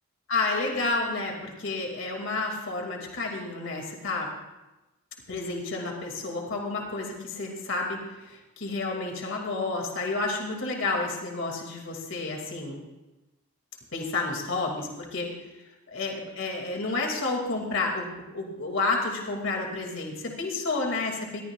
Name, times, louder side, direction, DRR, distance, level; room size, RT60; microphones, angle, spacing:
voice 1, 0.3-4.3 5.3-12.8 13.9-15.3 15.9-21.4, left 3 dB, 65° left, 1 dB, 2.4 m, -30 dB
20.5 x 14.5 x 2.4 m, 1.0 s
head